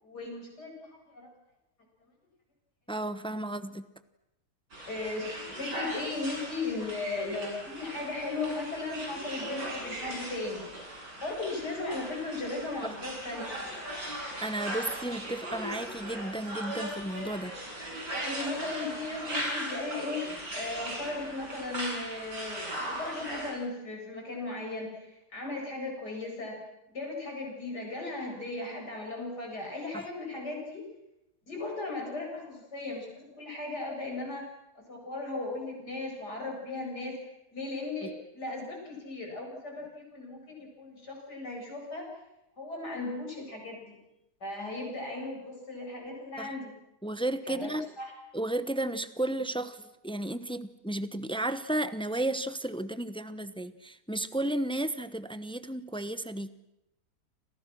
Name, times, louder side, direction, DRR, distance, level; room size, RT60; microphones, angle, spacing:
voice 1, 0.0-1.3 4.9-10.7 11.2-13.6 18.1-26.6 26.9-30.9 31.5-34.5 34.8-37.2 37.5-42.1 42.6-44.0 44.4-46.7 47.5-48.1, left 2 dB, 75° left, 0 dB, 8.7 m, -37 dB
voice 2, 2.9-3.8 12.8-12.9 14.4-17.5 29.9-30.1 38.0-38.1 46.4-46.5 47.0-47.9 48.3-56.5, right 1 dB, 5° left, 12 dB, 0.7 m, -33 dB
sound 1, 4.7-23.5, right 1 dB, 90° right, 7.8 m, -38 dB
30.0 x 26.5 x 6.3 m, 0.88 s
omnidirectional pair, 1.8 m